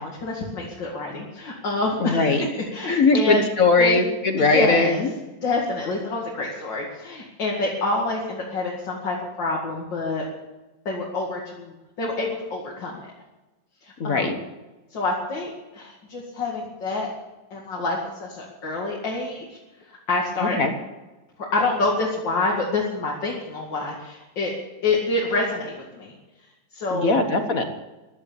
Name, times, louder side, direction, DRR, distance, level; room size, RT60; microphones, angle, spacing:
voice 1, 0.0-3.4 3.8-4.0 4.4-5.0 5.4-10.2 10.9-13.1 13.8-14.4 14.9-17.1 17.5-19.4 20.1-20.6 21.5-24.5 24.8-26.1 26.7-27.2, left 3 dB, 85° left, -2 dB, 3.0 m, -27 dB
voice 2, 2.0-2.5 2.9-5.1 14.0-14.4 20.4-20.7 26.9-27.6, left 3 dB, 50° left, 6 dB, 1.6 m, -20 dB
15.5 x 11.5 x 7.0 m, 1.1 s
omnidirectional pair, 1.9 m